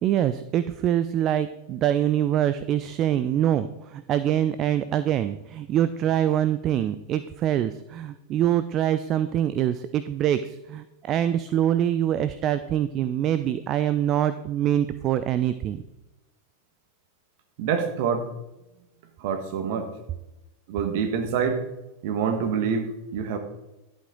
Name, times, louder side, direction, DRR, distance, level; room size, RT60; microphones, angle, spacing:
voice 1, 0.0-15.8, right 11 dB, 35° right, 13 dB, 0.4 m, -24 dB
voice 2, 17.6-18.3 19.2-19.9 20.7-21.6 22.0-23.4, right 6 dB, 50° right, 6 dB, 1.4 m, -26 dB
11.0 x 7.9 x 3.8 m, 0.97 s
figure-of-eight pair, 90°, 0 cm